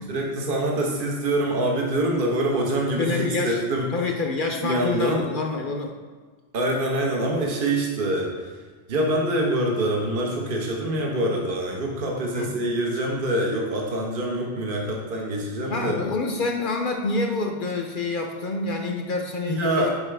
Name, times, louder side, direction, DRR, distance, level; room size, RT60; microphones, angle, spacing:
voice 1, 0.0-3.9 4.6-5.3 6.5-8.5 8.9-16.0 19.5-19.9, right 1 dB, 55° right, -1 dB, 1.1 m, -25 dB
voice 2, 3.0-3.6 3.9-5.9 12.4-12.5 15.7-19.9, left 3 dB, 55° left, 2 dB, 0.7 m, -27 dB
7.3 x 4.4 x 3.3 m, 1.4 s
omnidirectional pair, 1.1 m